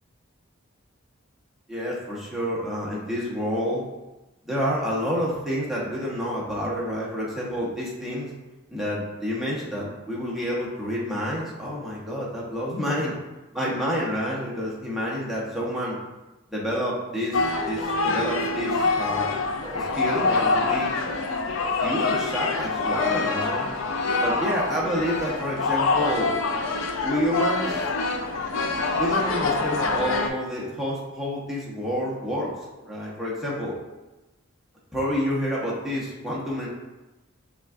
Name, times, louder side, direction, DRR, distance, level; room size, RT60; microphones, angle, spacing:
voice 1, 1.7-3.8 4.4-8.3 8.7-13.2 13.5-16.0 16.5-19.3 19.6-20.9 21.8-23.7 24.2-26.3 27.0-27.9 29.0-32.5 32.8-33.7 34.9-36.7, equal, ahead, -6 dB, 0.9 m, -28 dB
sound 1, 17.3-30.3, left 3 dB, 70° left, 0.4 m, -25 dB
6.0 x 2.4 x 2.4 m, 1.1 s
head